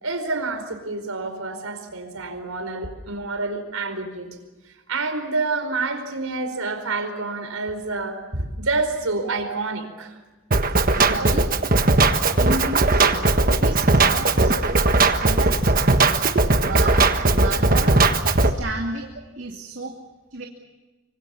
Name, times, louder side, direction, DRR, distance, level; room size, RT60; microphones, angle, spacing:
voice 1, 0.0-4.3 4.9-10.1 11.1-11.4 12.2-12.3, right 3 dB, 90° right, 8 dB, 4.8 m, -28 dB
Drum kit, 10.5-18.5, right 3 dB, 40° right, 1.4 m, -18 dB
voice 2, 11.0-11.6 12.4-13.3 13.6-14.7 15.2-15.8 16.4-17.0 17.3-18.0 18.4-19.1 19.4-20.0 20.3-20.5, right 2 dB, 65° right, 1 dB, 2.5 m, -32 dB
25.5 x 24.5 x 7.1 m, 1.2 s
head